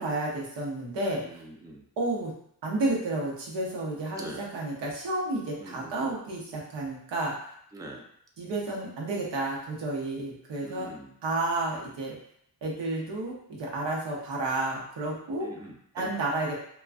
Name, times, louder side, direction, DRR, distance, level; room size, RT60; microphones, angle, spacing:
voice 1, 0.0-1.4 2.0-2.3 2.6-7.5 8.4-10.9 11.2-12.2 12.6-15.5 15.9-16.5, right 2 dB, 85° right, -3 dB, 0.7 m, -31 dB
voice 2, 1.2-1.8 4.1-4.4 5.6-6.1 7.7-8.1 10.6-11.1 15.4-16.1, right 1 dB, 10° right, 1 dB, 0.4 m, -43 dB
2.3 x 2.2 x 2.4 m, 0.67 s
cardioid pair, 50°, 41 cm